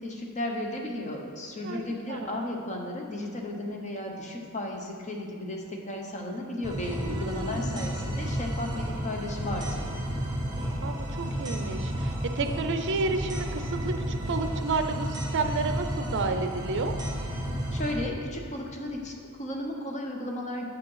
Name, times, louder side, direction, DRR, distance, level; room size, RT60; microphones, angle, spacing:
voice 1, 0.0-9.9 17.7-20.7, left 1 dB, 35° left, 1 dB, 0.9 m, -34 dB
sound 1, 6.6-17.9, equal, 20° right, 1.3 m, -32 dB
voice 2, 7.1-7.9 10.8-16.9, right 3 dB, 55° right, 7 dB, 0.5 m, -31 dB
7.6 x 5.2 x 5.6 m, 2.4 s
head